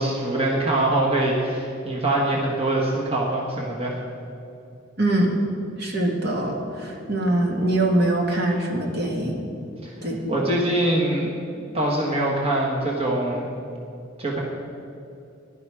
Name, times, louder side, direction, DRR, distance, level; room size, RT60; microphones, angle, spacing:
voice 1, 0.0-4.0 9.8-9.9 10.3-11.4 11.7-13.5 14.2-14.4, right 1 dB, 30° right, -2 dB, 1.6 m, -23 dB
voice 2, 5.0-5.4 5.8-9.4 10.0-10.4, right 1 dB, 55° right, 0 dB, 2.1 m, -23 dB
15.0 x 11.5 x 4.9 m, 2.6 s
head